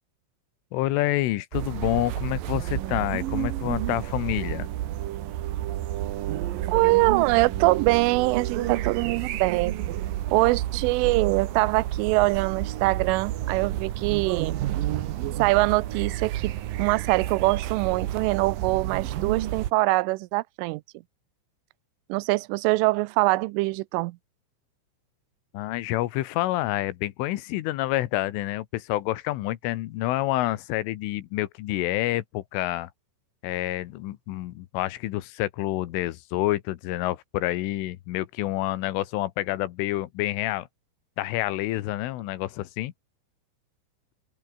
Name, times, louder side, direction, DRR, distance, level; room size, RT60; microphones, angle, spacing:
voice 1, 0.7-4.7 25.5-32.9 33.4-40.7 41.2-42.9, left 16 dB, 85° left, 3.7 m, -28 dB
sound 1, 1.5-19.7, right 13 dB, 70° right, 2.3 m, -30 dB
voice 2, 6.7-9.8 10.3-14.6 15.4-20.8 22.1-24.2, right 23 dB, 85° right, 3.1 m, -23 dB
open air
omnidirectional pair, 5.6 m